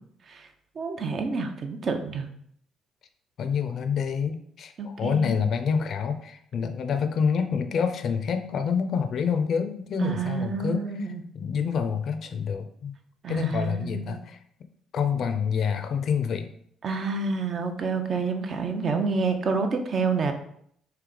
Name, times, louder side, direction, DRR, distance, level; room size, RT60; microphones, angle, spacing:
voice 1, 0.8-2.3 4.8-5.5 10.0-11.2 13.2-14.2 16.8-20.3, right 4 dB, 50° right, 6 dB, 0.6 m, -28 dB
voice 2, 3.4-13.0 13.3-14.4 14.9-16.5, left 6 dB, 60° left, 8 dB, 0.4 m, -27 dB
3.3 x 2.8 x 3.8 m, 0.68 s
hypercardioid pair, 50°, 0 cm